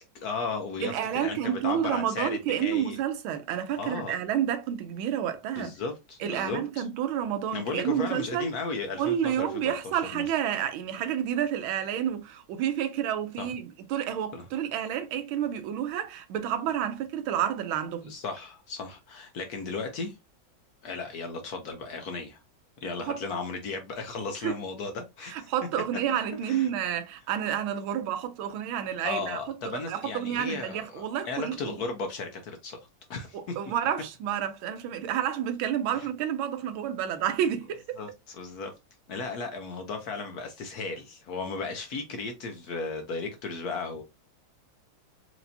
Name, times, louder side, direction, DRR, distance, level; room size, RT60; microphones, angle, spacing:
voice 1, 0.2-3.0 3.8-4.1 5.6-6.9 7.5-10.2 13.4-13.5 14.3-14.5 18.0-20.1 20.8-22.4 22.8-25.5 26.1-26.7 29.0-33.5 35.9-36.1 38.0-38.7 39.1-44.0, left 4 dB, 65° left, 1.0 m, -35 dB
voice 2, 0.8-5.7 6.2-8.5 9.0-18.1 23.0-23.2 24.4-24.5 25.3-29.4 29.6-31.8 33.3-38.0, right 10 dB, 90° right, 1.5 m, -30 dB
4.6 x 2.9 x 2.6 m
omnidirectional pair, 2.2 m